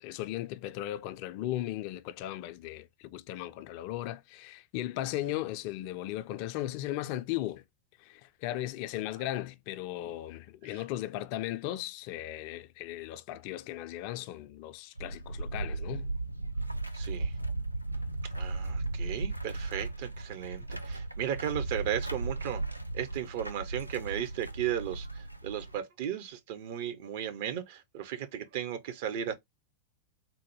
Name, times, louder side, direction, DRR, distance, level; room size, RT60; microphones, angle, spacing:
voice 1, 0.0-7.6 8.0-16.1, left 14 dB, 45° left, 0.3 m, -37 dB
sound 1, 15.0-25.8, right 2 dB, 90° right, 0.3 m, -36 dB
voice 2, 16.9-17.3 18.2-22.6 22.9-29.3, right 10 dB, 50° right, 0.6 m, -35 dB
3.7 x 2.1 x 3.0 m
figure-of-eight pair, 90°, 0 cm